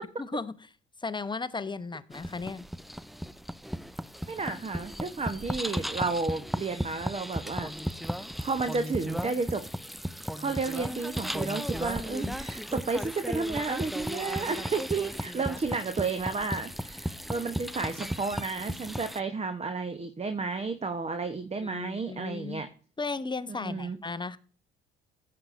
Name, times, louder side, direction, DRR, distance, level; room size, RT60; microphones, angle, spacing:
voice 1, 0.2-0.5 1.0-2.6 12.1-12.4 21.6-22.6 23.0-24.4, left 4 dB, 15° left, 0.8 m, -35 dB
sound 1, 2.1-19.2, equal, ahead, 0.3 m, -35 dB
voice 2, 4.3-7.7 8.1-9.6 10.4-22.7 23.6-24.0, right 4 dB, 20° right, 0.9 m, -32 dB
15.0 x 7.7 x 2.5 m
figure-of-eight pair, 50°, 30 cm